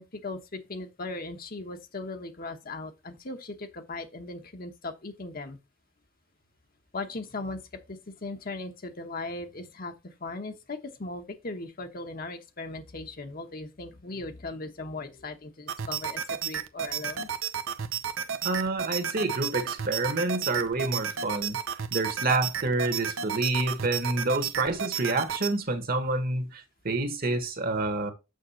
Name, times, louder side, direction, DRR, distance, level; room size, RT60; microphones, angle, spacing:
voice 1, 0.0-5.6 6.9-7.6 7.9-17.3, left 2 dB, 45° left, 1.1 m, -38 dB
sound 1, 15.7-25.5, right 8 dB, 80° right, 0.7 m, -33 dB
voice 2, 18.4-21.6 21.9-28.1, right 2 dB, 45° right, 1.4 m, -28 dB
6.5 x 6.1 x 4.3 m
head